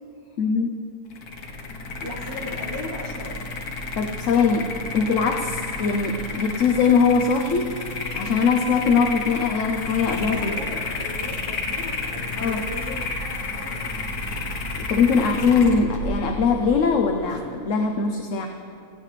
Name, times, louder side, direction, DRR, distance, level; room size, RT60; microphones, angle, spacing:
voice 1, 0.4-0.7 4.0-7.6 8.1-10.5 12.4-12.6 14.8-18.5, left 5 dB, 65° left, 4 dB, 1.0 m, -21 dB
sound 1, 1.1-17.4, left 3 dB, 85° left, 1.7 m, -31 dB
voice 2, 2.0-3.4 10.3-13.9, left 1 dB, 40° left, -3 dB, 2.1 m, -37 dB
17.0 x 16.0 x 3.3 m, 2.6 s
omnidirectional pair, 1.5 m